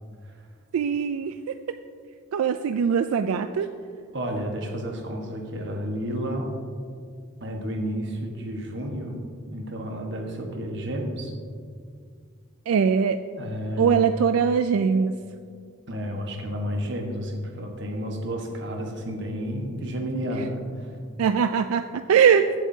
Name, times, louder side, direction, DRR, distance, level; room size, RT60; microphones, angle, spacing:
voice 1, 0.7-1.8 2.3-3.7 12.7-13.2 13.8-15.1 21.2-22.5, right 7 dB, 85° right, 10 dB, 0.3 m, -22 dB
voice 2, 4.1-6.5 7.4-9.2 9.5-11.3 13.4-14.0 15.9-20.9, equal, 55° right, 2 dB, 1.3 m, -31 dB
14.5 x 8.1 x 2.7 m, 2.1 s
head